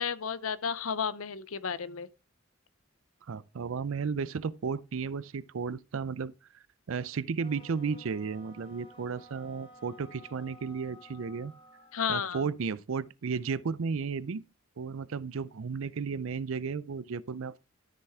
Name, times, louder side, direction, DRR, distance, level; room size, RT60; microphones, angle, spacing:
voice 1, 0.0-2.1 11.9-12.5, left 7 dB, 80° left, 0.7 m, -32 dB
voice 2, 3.3-11.5 12.1-14.4 14.8-17.6, right 5 dB, 70° right, 0.5 m, -34 dB
sound 1, 7.4-12.0, left 1 dB, 25° left, 1.5 m, -54 dB
13.0 x 6.5 x 3.6 m
head